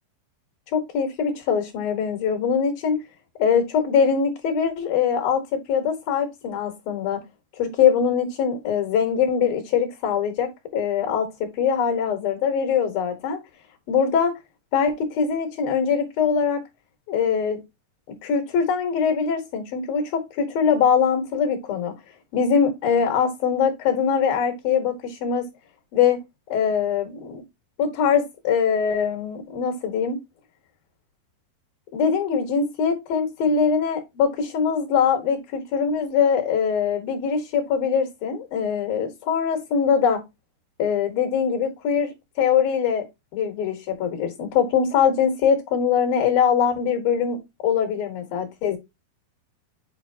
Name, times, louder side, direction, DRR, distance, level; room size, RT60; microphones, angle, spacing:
voice 1, 0.7-3.0 3.4-5.4 5.7-7.2 7.6-13.4 13.9-14.3 14.7-16.6 17.1-17.6 18.2-21.9 22.3-25.4 25.9-26.2 26.5-27.4 27.8-30.2 31.9-40.2 40.8-43.0 43.3-48.8, left 7 dB, 65° left, 3.0 m, -22 dB
8.6 x 4.5 x 2.8 m
omnidirectional pair, 4.8 m